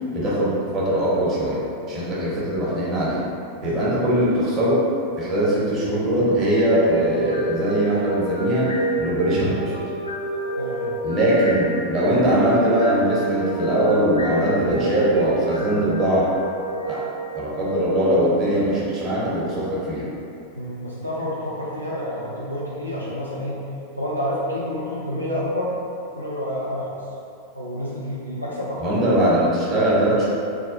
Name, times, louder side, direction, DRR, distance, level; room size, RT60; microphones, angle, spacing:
voice 1, 0.1-1.6 1.9-3.2 3.6-4.8 5.2-8.7 9.0-9.7 11.0-16.3 16.9-17.0 17.3-20.0 28.8-30.2, right 1 dB, 30° right, -7 dB, 0.9 m, -21 dB
voice 2, 3.6-4.1 10.6-10.9 20.6-23.6 23.9-25.8 26.1-26.9 27.5-28.8, equal, 85° right, -6 dB, 0.4 m, -29 dB
sound 1, 6.1-18.2, right 2 dB, 90° left, 0.6 m, -29 dB
3.4 x 2.3 x 2.5 m, 2.6 s
figure-of-eight pair, 90°, 0 cm